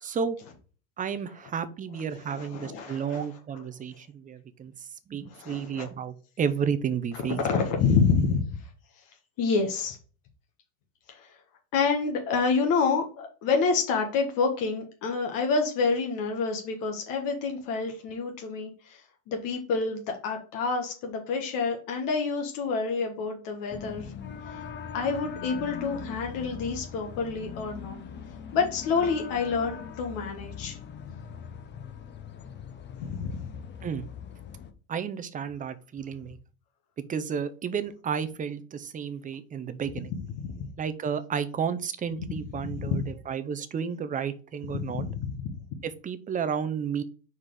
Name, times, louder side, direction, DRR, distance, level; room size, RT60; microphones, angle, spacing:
voice 1, 0.0-0.4 1.0-7.4 33.8-34.0 34.9-36.4 37.1-40.1 40.8-45.1 45.8-47.0, right 7 dB, 20° right, 13 dB, 0.6 m, -32 dB
voice 2, 2.3-3.3 3.5-3.6 5.3-5.9 7.1-8.5 9.4-10.0 11.1-11.3 11.7-19.0 19.3-24.1 24.5-24.6 24.9-28.0 28.5-30.8 33.0-33.6 40.4-40.7 42.8-43.0 44.8-45.4, left 5 dB, 50° left, 3 dB, 1.5 m, -28 dB
sound 1, 23.7-34.7, left 7 dB, 25° left, 0.9 m, -41 dB
4.8 x 4.1 x 4.8 m, 0.37 s
supercardioid pair, 115°, 42 cm